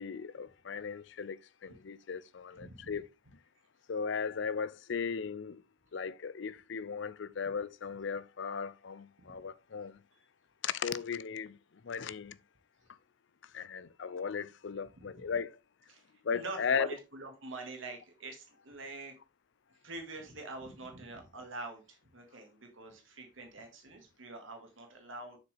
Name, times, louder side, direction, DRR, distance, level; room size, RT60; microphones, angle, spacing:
voice 1, 0.0-3.0 3.9-5.6 5.9-10.0 10.6-11.6 11.8-12.4 13.5-15.6 16.2-16.9, left 6 dB, 65° left, 0.5 m, -36 dB
voice 2, 2.5-3.0 9.3-9.4 15.0-15.2 15.9-16.1 16.3-19.1 19.8-25.4, right 2 dB, 75° right, 1.8 m, -45 dB
7.2 x 6.5 x 3.4 m
head